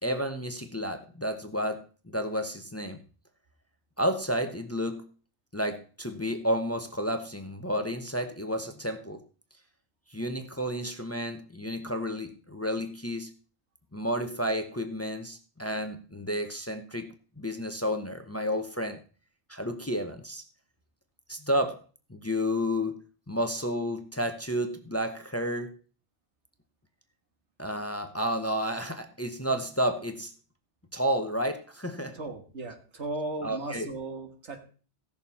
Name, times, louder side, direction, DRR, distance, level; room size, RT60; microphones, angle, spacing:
voice 1, 0.0-3.0 4.0-5.1 5.5-9.2 10.1-13.3 13.9-17.1 17.4-19.0 19.5-20.4 21.3-21.8 22.1-25.8 27.6-30.3 30.9-32.2 33.4-33.9, equal, 15° left, 7 dB, 0.8 m, -31 dB
voice 2, 32.1-34.6, right 2 dB, 75° right, 5 dB, 2.0 m, -36 dB
16.5 x 6.8 x 4.2 m, 0.40 s
omnidirectional pair, 1.2 m